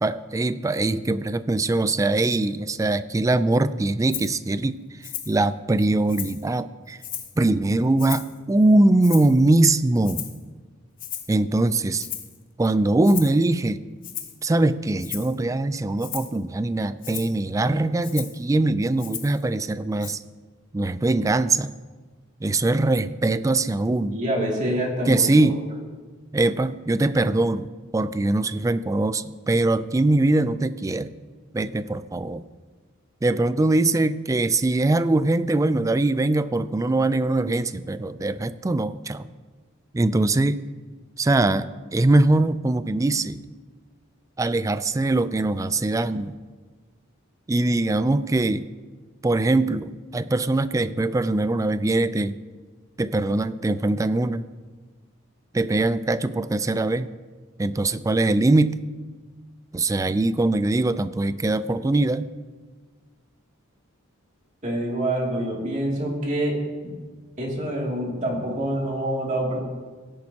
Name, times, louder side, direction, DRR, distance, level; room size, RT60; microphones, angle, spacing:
voice 1, 0.0-4.8 5.3-7.0 7.4-10.3 11.3-12.1 12.6-13.8 14.4-20.2 20.7-21.8 22.4-24.2 25.1-25.6 26.3-31.1 31.5-32.4 33.2-39.3 39.9-40.6 41.2-43.5 44.4-46.4 47.5-48.7 49.2-52.4 53.0-54.5 55.5-57.1 57.6-58.8 59.7-62.3, right 2 dB, 15° right, 14 dB, 0.3 m, -22 dB
Rattle (instrument), 4.1-4.3 5.0-5.4 5.8-6.5 7.0-7.4 8.0-8.4 9.0-9.5 10.0-10.4 11.0-11.4 12.0-12.4 13.0-13.4 14.0-14.4 15.0-15.3 16.0-16.4 17.0-17.3 18.0-18.4 19.0-19.4 20.0-20.1, left 10 dB, 40° left, 1.0 m, -35 dB
voice 2, 24.1-25.2 25.7-25.8 64.6-66.6 66.8-66.9 67.4-69.6, right 1 dB, 35° right, -2 dB, 2.6 m, -26 dB
17.0 x 10.5 x 2.9 m, 1.4 s
head